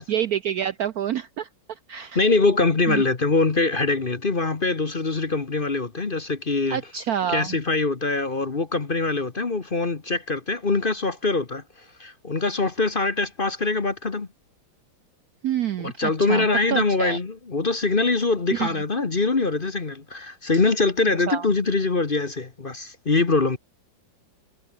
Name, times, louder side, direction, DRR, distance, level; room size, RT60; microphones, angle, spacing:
voice 1, 0.0-1.5 1.9-2.3 2.9-3.0 6.7-7.6 15.4-17.2 18.5-18.8 21.3-21.5, right 10 dB, 65° right, 1.0 m, -27 dB
voice 2, 2.1-6.8 7.3-11.6 12.0-14.3 15.8-23.6, left 3 dB, 30° left, 1.4 m, -23 dB
omnidirectional pair, 2.1 m